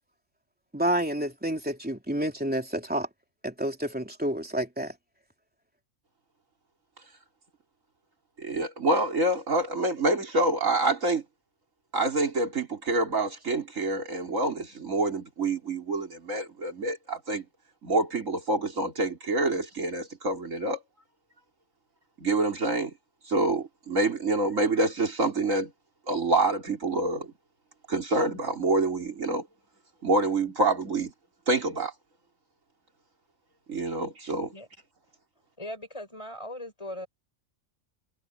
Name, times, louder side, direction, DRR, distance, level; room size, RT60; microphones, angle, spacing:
voice 1, 0.7-3.1 3.4-4.9, right 1 dB, 5° right, 3.2 m, -29 dB
voice 2, 8.4-11.2 11.9-17.4 17.8-20.8 22.2-22.9 23.3-25.7 26.1-27.3 27.9-29.5 30.0-31.1 31.5-31.9 33.7-34.5, right 2 dB, 90° right, 4.0 m, -27 dB
voice 3, 35.6-37.1, left 1 dB, 25° left, 4.9 m, -39 dB
omnidirectional pair, 1.3 m